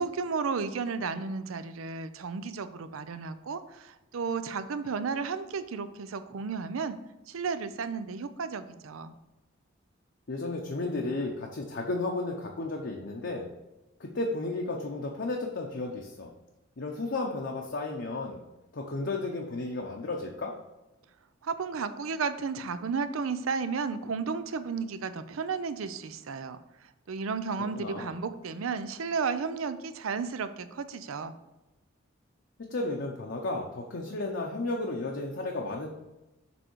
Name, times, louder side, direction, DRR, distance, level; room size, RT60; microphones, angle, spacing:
voice 1, 0.0-7.0 7.3-9.1 21.4-31.3, right 5 dB, 85° right, 11 dB, 0.5 m, -33 dB
voice 2, 10.3-13.5 14.0-16.3 16.8-18.4 18.7-20.5 27.7-28.1 32.7-35.9, left 2 dB, 60° left, 0 dB, 0.7 m, -33 dB
6.9 x 3.7 x 4.6 m, 1.0 s
head